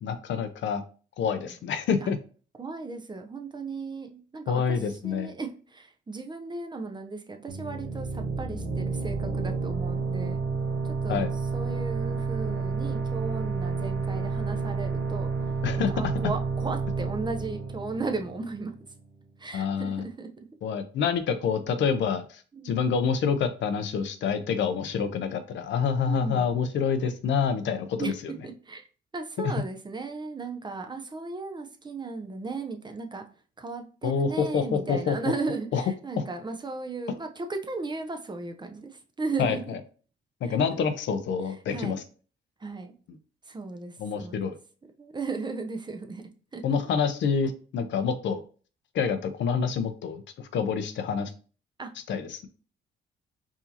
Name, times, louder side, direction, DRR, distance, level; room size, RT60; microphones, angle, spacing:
voice 1, 0.0-0.8 1.2-2.2 4.5-5.3 11.1-11.3 15.6-16.1 19.5-20.0 20.6-28.3 29.4-29.5 34.0-35.2 35.7-35.8 36.2-36.3 39.4-39.8 40.4-42.0 44.0-44.6 46.6-48.4 48.9-51.3 52.1-52.5, left 6 dB, 65° left, 9 dB, 0.6 m, -27 dB
voice 2, 2.6-4.8 5.0-10.4 11.0-11.2 11.5-15.3 15.8-18.7 19.4-20.3 22.5-22.8 26.1-26.4 28.0-28.1 28.4-28.9 29.1-33.2 33.6-38.9 39.2-39.8 40.5-40.6 41.7-42.0 42.6-42.9 43.5-44.4 45.0-46.2 46.5-46.6 51.8-51.9, right 3 dB, 20° right, 5 dB, 0.6 m, -35 dB
sound 1, 7.5-18.9, right 4 dB, 60° right, 0.9 m, -30 dB
4.7 x 2.7 x 2.8 m, 0.38 s
cardioid pair, 90°, 20 cm